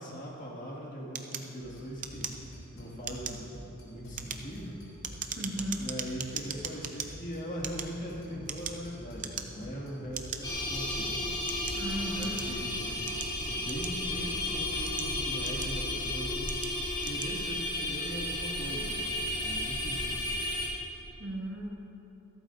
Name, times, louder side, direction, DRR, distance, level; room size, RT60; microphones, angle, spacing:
voice 1, 0.0-3.5 3.9-4.8 5.7-11.4 12.1-13.1 13.4-16.5 17.0-19.1 19.4-20.3, equal, 35° left, -4 dB, 2.0 m, -40 dB
sound 1, 1.1-2.7 3.0-3.5 4.0-7.1 7.5-8.9 9.2-9.7 10.1-10.4 11.1-12.5 13.1-14.2 14.7-15.9 16.4-16.7 17.0-17.3, right 8 dB, 35° right, 0.6 m, -39 dB
sound 2, 1.6-15.3, equal, 75° left, 2.9 m, -47 dB
voice 2, 5.4-5.9 11.7-12.5 21.2-21.7, equal, 55° right, -1 dB, 1.6 m, -36 dB
sound 3, 10.4-20.7, left 1 dB, 20° left, 2.7 m, -33 dB
26.0 x 8.8 x 2.6 m, 3.0 s
head